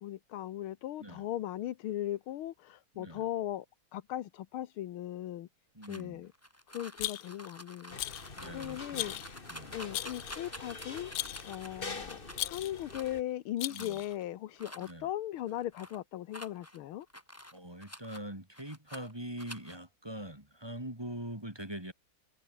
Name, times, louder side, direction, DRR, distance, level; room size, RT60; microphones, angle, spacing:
voice 1, 0.0-3.7 3.9-5.5 5.9-6.3 6.7-8.0 8.5-9.2 9.7-11.1 11.4-17.1, left 13 dB, 85° left, 1.8 m, -38 dB
voice 2, 2.9-3.3 5.7-6.2 8.4-9.2 9.5-9.8 13.7-14.0 14.8-15.1 17.5-21.9, right 1 dB, 10° right, 3.5 m, -43 dB
sound 1, 5.8-12.4 12.9-13.3 13.7-14.2 14.6-14.9 15.4-16.0 16.3-18.2 18.6-19.1 19.4-19.8, left 1 dB, 5° left, 3.8 m, -49 dB
Rattle, 7.0-7.5 8.0-8.3 8.9-9.3 9.9-10.5 11.1-11.5 12.3-12.8 13.6-14.1, left 16 dB, 70° left, 1.1 m, -38 dB
sound 2, 7.9-13.2, left 3 dB, 25° left, 2.1 m, -45 dB
omnidirectional pair, 2.3 m